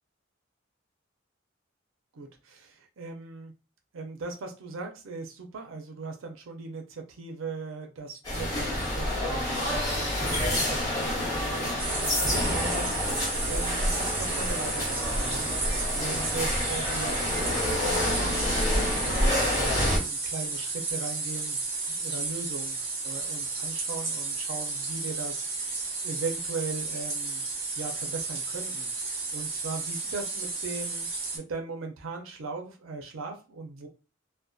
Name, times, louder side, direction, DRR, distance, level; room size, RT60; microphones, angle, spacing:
voice 1, 2.1-3.5 3.9-17.3 17.6-22.8 23.0-27.4 27.8-31.1 31.3-33.9, right 4 dB, 90° right, 4 dB, 0.5 m, -39 dB
sound 1, 8.2-20.0, left 1 dB, 20° left, 1.1 m, -28 dB
sound 2, 11.8-31.4, right 3 dB, 30° right, 1.0 m, -33 dB
2.6 x 2.1 x 2.2 m, 0.33 s
head